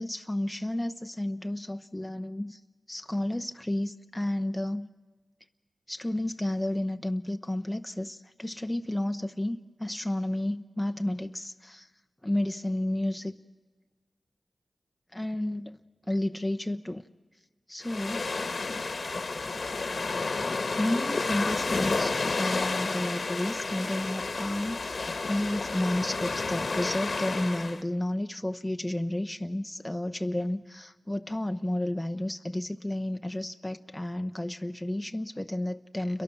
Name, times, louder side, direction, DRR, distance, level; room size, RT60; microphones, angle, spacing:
voice 1, 0.0-2.6 2.9-4.9 5.9-11.9 12.2-13.3 15.1-15.8 16.1-17.0 17.7-18.3 20.6-36.2, left 1 dB, 15° left, 7 dB, 0.9 m, -32 dB
sound 1, 17.8-27.8, left 3 dB, 65° left, 1.4 m, -31 dB
29.0 x 23.0 x 7.1 m, 1.3 s
cardioid pair, 50°, 0 cm